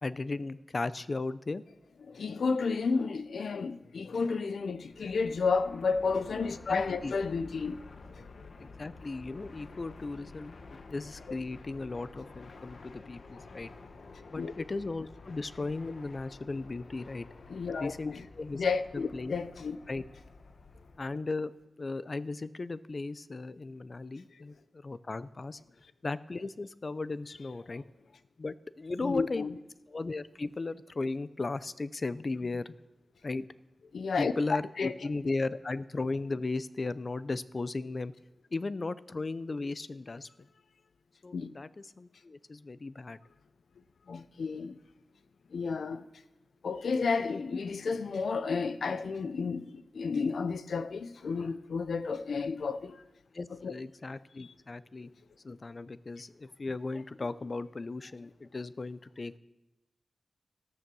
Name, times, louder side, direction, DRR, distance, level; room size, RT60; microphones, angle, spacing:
voice 1, 0.0-1.6 6.7-7.1 8.6-13.7 14.3-17.3 17.8-18.6 19.1-19.4 19.9-20.0 21.0-25.6 26.0-27.8 28.4-29.5 29.9-32.7 33.2-33.4 34.2-38.1 38.5-40.3 41.2-43.2 53.3-55.1 55.4-59.4, left 3 dB, 40° left, 0.6 m, -36 dB
voice 2, 2.1-7.8 8.2-8.5 11.3-11.4 14.4-14.5 17.5-18.2 18.5-19.8 27.7-27.8 29.0-29.5 33.9-34.9 41.3-41.5 44.1-44.8 45.5-46.0 46.6-53.0 53.6-53.7 54.4-54.5, left 4 dB, 90° left, 0.7 m, -32 dB
Fixed-wing aircraft airplane, 4.7-21.1, left 3 dB, 70° left, 1.2 m, -51 dB
14.0 x 13.5 x 6.2 m
wide cardioid pair, 105°, 0 cm